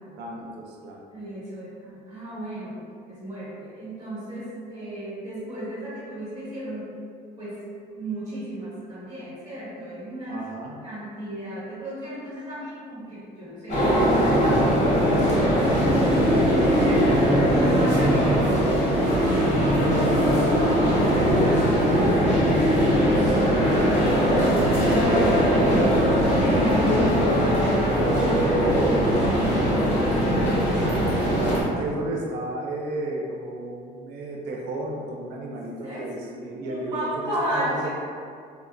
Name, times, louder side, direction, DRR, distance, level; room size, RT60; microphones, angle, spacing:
voice 1, 0.2-1.0 10.3-10.8 31.8-37.9, right 2 dB, 85° right, -1 dB, 0.5 m, -33 dB
voice 2, 1.1-2.8 3.1-6.9 7.4-7.6 7.9-10.4 10.8-17.2 17.5-20.5 20.9-27.4 27.7-31.1 35.8-36.1 36.6-37.9, right 1 dB, 25° right, -9 dB, 1.2 m, -34 dB
sound 1, 13.7-31.6, equal, 40° left, 1.0 m, -20 dB
4.2 x 2.0 x 2.4 m, 2.2 s
cardioid pair, 110°, 17 cm